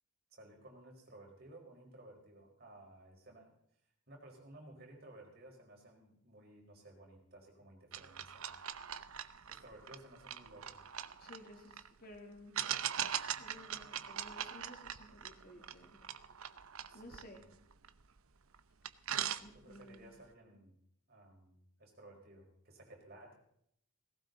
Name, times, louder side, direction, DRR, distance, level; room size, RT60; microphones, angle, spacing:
voice 1, 0.3-3.6 4.1-8.6 9.5-10.8 16.9-17.4 19.5-20.7 21.1-23.4, right 1 dB, 45° right, 0 dB, 4.9 m, -57 dB
sound 1, 7.9-11.9 12.5-18.2 18.5-18.6 18.8-19.9, right 9 dB, 75° right, 0.8 m, -41 dB
voice 2, 11.2-12.6 13.4-16.0 16.9-17.5 19.2-20.1, left 1 dB, 45° left, 3 dB, 3.1 m, -55 dB
18.5 x 16.5 x 4.0 m, 0.71 s
head